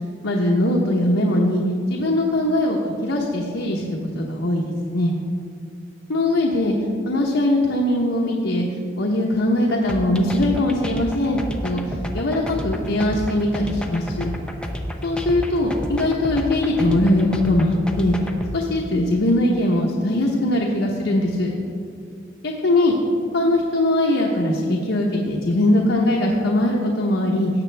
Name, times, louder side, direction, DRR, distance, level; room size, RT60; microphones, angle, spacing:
voice 1, 0.2-1.6 1.9-5.1 6.1-6.7 7.1-8.7 9.0-11.8 12.1-14.3 15.0-18.1 18.5-21.5 22.4-22.9 23.3-27.5, left 1 dB, 80° left, -1 dB, 0.9 m, -21 dB
sound 1, 9.9-18.5, equal, 5° left, 0.6 m, -30 dB
16.5 x 6.8 x 3.4 m, 2.4 s
head